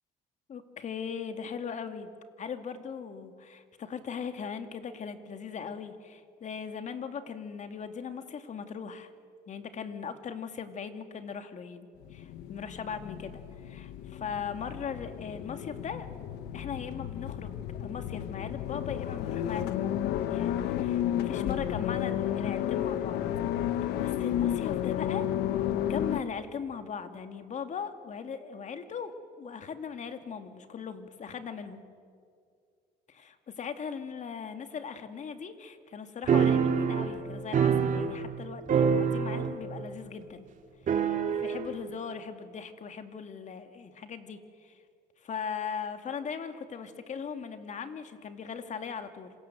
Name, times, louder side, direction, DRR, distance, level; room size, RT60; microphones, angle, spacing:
voice 1, 0.5-2.1 2.4-9.1 9.5-16.1 16.5-23.2 24.0-25.3 25.9-31.8 33.1-40.5 41.3-44.8 45.2-49.3, left 6 dB, 45° left, 8 dB, 2.4 m, -39 dB
sound 1, 12.0-26.2, left 11 dB, 85° left, 1.2 m, -32 dB
sound 2, 36.3-38.4 38.7-39.7 39.9-40.0 40.9-41.7, right 7 dB, 50° right, 2.4 m, -26 dB
26.5 x 26.5 x 7.8 m, 2.2 s
cardioid pair, 110°, 17 cm